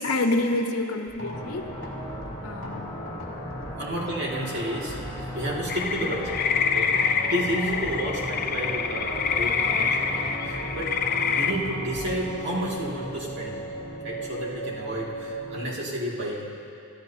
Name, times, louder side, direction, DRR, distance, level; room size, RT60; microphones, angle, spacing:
voice 1, 0.0-1.7 2.4-3.0 6.0-6.1, left 2 dB, 85° left, 4 dB, 1.1 m, -27 dB
sound 1, 1.1-15.3, equal, 55° left, 2.2 m, -42 dB
sound 2, 1.3-15.6, equal, 25° left, 1.8 m, -36 dB
voice 2, 3.8-6.4 6.7-10.9 11.4-13.6 14.0-16.7, right 1 dB, 50° right, -4 dB, 2.3 m, -31 dB
sound 3, 5.7-11.5, left 6 dB, 40° left, 0.5 m, -26 dB
24.0 x 12.5 x 2.8 m, 2.7 s
head